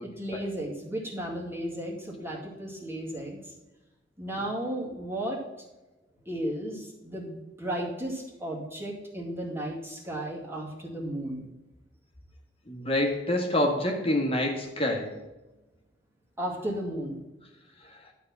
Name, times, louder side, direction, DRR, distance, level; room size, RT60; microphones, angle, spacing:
voice 1, 0.2-3.4 4.2-5.4 6.3-11.5 16.4-17.2, right 1 dB, 15° right, -3 dB, 2.1 m, -34 dB
voice 2, 12.7-15.1, left 1 dB, 30° left, 0 dB, 1.7 m, -27 dB
11.5 x 4.2 x 7.3 m, 1.1 s
head